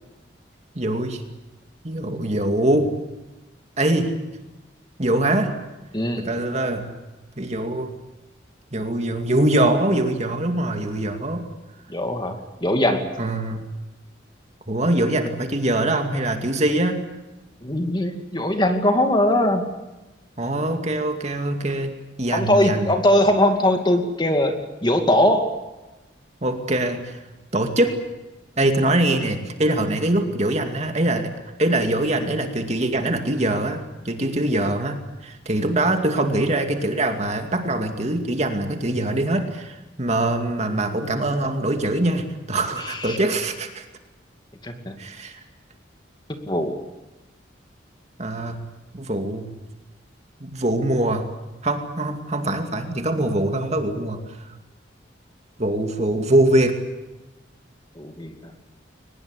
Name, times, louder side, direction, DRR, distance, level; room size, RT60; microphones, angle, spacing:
voice 1, 0.8-1.2 1.8-2.9 3.8-4.1 5.0-5.5 6.2-6.9 7.4-7.9 8.7-11.4 13.2-13.6 14.7-17.0 20.4-21.9 22.2-22.9 26.4-27.2 27.5-28.0 28.6-31.3 31.6-43.9 45.0-45.4 48.2-48.6 48.9-49.5 50.4-51.2 51.6-54.2 55.6-56.8, right 1 dB, 35° right, 5 dB, 2.4 m, -23 dB
voice 2, 5.9-6.2 11.9-13.1 17.6-19.6 22.3-24.5 24.8-25.5 42.9-43.2 44.6-44.9 46.5-46.8 58.0-58.3, left 1 dB, 25° left, 5 dB, 2.5 m, -20 dB
23.0 x 20.5 x 8.3 m, 1.1 s
head